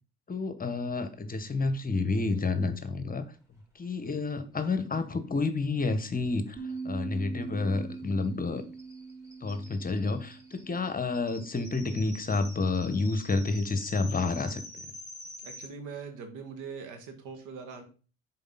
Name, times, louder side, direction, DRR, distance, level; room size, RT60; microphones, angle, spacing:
voice 1, 0.3-3.2 3.7-8.6 9.4-14.8, left 3 dB, 25° left, 11 dB, 1.1 m, -30 dB
sound 1, 6.0-6.1 6.3-6.4 6.7-15.7, left 1 dB, 10° right, 3.6 m, -48 dB
sound 2, 6.6-11.7, right 4 dB, 5° left, 1.6 m, -42 dB
voice 2, 15.4-17.8, right 5 dB, 65° right, 5 dB, 2.1 m, -42 dB
7.0 x 4.5 x 5.7 m, 0.37 s
hypercardioid pair, 60°, 33 cm